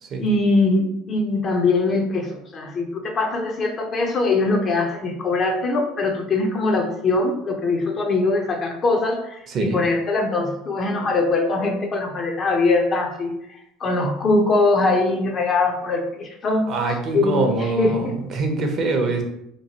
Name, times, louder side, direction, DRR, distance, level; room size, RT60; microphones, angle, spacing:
voice 1, 0.2-13.3 13.8-16.7 17.1-18.2, left 3 dB, 40° left, 2 dB, 0.6 m, -22 dB
voice 2, 9.5-9.8 16.7-19.2, right 3 dB, 50° right, 3 dB, 0.6 m, -24 dB
3.0 x 2.3 x 2.8 m, 0.79 s
supercardioid pair, 85°, 0 cm